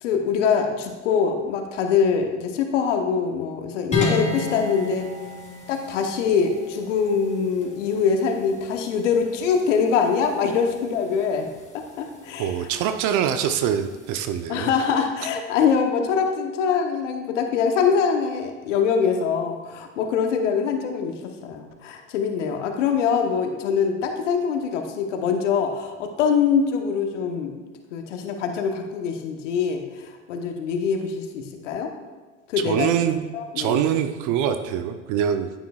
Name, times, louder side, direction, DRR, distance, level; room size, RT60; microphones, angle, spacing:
voice 1, 0.0-5.1 5.7-11.5 11.7-12.5 14.5-27.6 27.9-31.9 32.5-32.9 33.3-33.8, left 6 dB, 85° left, 4 dB, 1.0 m, -23 dB
sound 1, 3.9-14.4, left 3 dB, 20° left, 2.5 m, -35 dB
voice 2, 12.4-14.7 32.7-33.2 33.6-35.5, right 9 dB, 55° right, 8 dB, 0.7 m, -24 dB
9.2 x 9.1 x 2.3 m, 1.3 s
hypercardioid pair, 85°, 36 cm